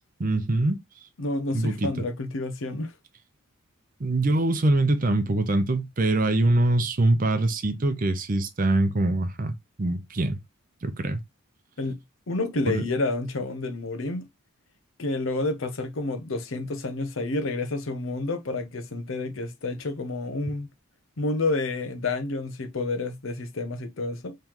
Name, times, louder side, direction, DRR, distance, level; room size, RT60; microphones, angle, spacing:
voice 1, 0.2-0.8 1.5-2.0 4.0-10.4 10.8-11.2 12.7-12.8, right 2 dB, 40° right, 0.6 m, -24 dB
voice 2, 1.2-2.9 11.8-12.0 12.3-14.2 15.0-20.7 21.2-24.4, left 2 dB, 70° left, 0.7 m, -29 dB
3.7 x 3.2 x 2.9 m
head